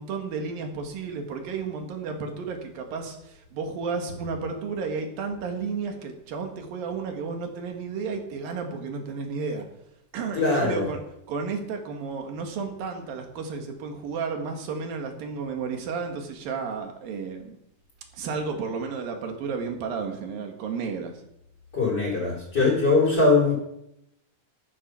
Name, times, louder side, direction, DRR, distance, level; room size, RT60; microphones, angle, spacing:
voice 1, 0.0-9.7 10.1-11.0 11.3-17.6 18.1-21.1, right 5 dB, 60° right, 3 dB, 3.4 m, -32 dB
voice 2, 10.3-10.9 21.7-23.5, left 3 dB, 25° left, -1 dB, 3.6 m, -21 dB
12.5 x 11.0 x 6.2 m, 0.80 s
omnidirectional pair, 4.9 m